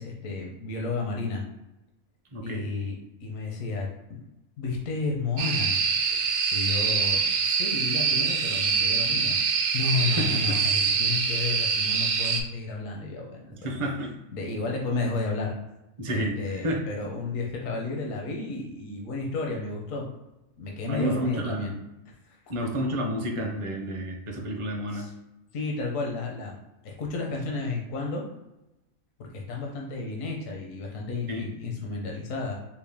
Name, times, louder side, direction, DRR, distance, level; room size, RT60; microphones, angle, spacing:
voice 1, 0.0-1.4 2.4-4.2 4.6-5.8 6.2-9.4 9.7-13.6 14.3-15.5 16.1-20.1 20.6-21.7 22.3-22.4 24.9-25.1 25.5-26.6 26.8-28.2 29.2-32.5, left 3 dB, 75° left, 0 dB, 1.1 m, -32 dB
voice 2, 2.3-2.7 10.0-10.6 13.5-14.2 16.0-16.8 20.9-21.7 22.5-25.1 31.3-31.5, equal, 35° right, 1 dB, 0.5 m, -30 dB
sound 1, 5.4-12.4, right 5 dB, 80° right, 1.0 m, -25 dB
4.7 x 2.1 x 3.4 m, 0.95 s
omnidirectional pair, 1.4 m